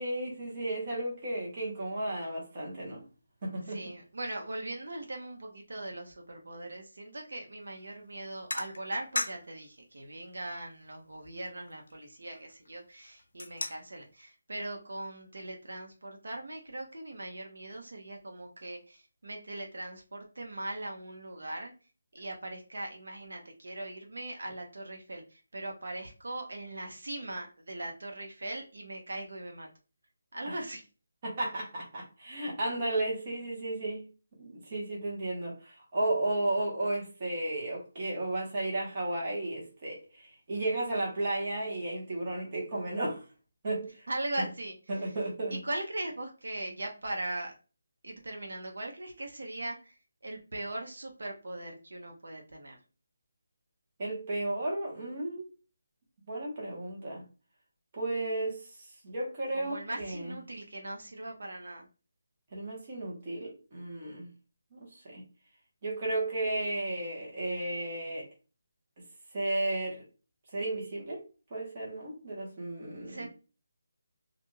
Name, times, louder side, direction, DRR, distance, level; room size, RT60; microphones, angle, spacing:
voice 1, 0.0-3.0 3.4-3.8 30.4-30.6 31.2-34.1 34.4-43.2 43.6-44.1 44.9-45.6 54.0-55.5 56.3-57.2 57.9-58.6 59.0-60.3 62.5-64.3 64.7-65.2 65.8-68.3 69.3-70.0 70.5-71.2 71.5-73.3, right 2 dB, 25° right, 0.9 m, -33 dB
voice 2, 3.7-21.7 22.1-29.7 30.3-30.8 44.1-45.1 45.5-47.5 48.0-50.0 50.2-52.8 59.5-61.9 73.1-73.3, right 1 dB, 75° right, 0.7 m, -40 dB
sound 1, 7.6-7.8 8.5-9.6 10.0-10.1 10.7-10.8 11.0-12.7 13.1-14.0, left 2 dB, 65° left, 0.5 m, -38 dB
2.4 x 2.2 x 3.0 m
hypercardioid pair, 175°, 0 cm